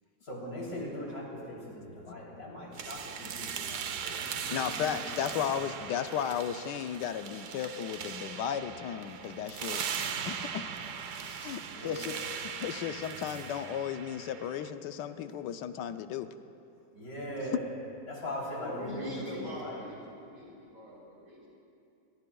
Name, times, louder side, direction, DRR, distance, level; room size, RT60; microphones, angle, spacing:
voice 1, 0.2-5.9 11.7-12.3 16.9-17.7 18.1-19.7, equal, 55° left, -4 dB, 3.9 m, -40 dB
sound 1, 2.8-14.7, right 7 dB, 70° right, 1.3 m, -39 dB
voice 2, 4.5-9.8 10.3-10.6 11.4-12.1 12.4-16.3, left 9 dB, 80° left, 10 dB, 1.3 m, -35 dB
voice 3, 18.6-21.5, left 1 dB, 35° right, -5 dB, 4.7 m, -42 dB
22.5 x 21.5 x 2.3 m, 2.6 s
omnidirectional pair, 1.9 m